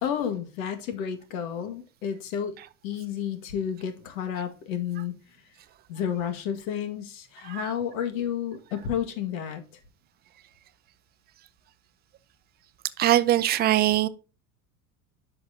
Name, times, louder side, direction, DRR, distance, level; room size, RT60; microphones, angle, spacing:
voice 1, 0.0-2.6 2.8-5.1 5.9-9.6, left 8 dB, 85° left, 1.9 m, -31 dB
voice 2, 13.0-14.1, right 13 dB, 25° right, 0.4 m, -22 dB
10.0 x 5.9 x 2.8 m
cardioid pair, 155°, 39 cm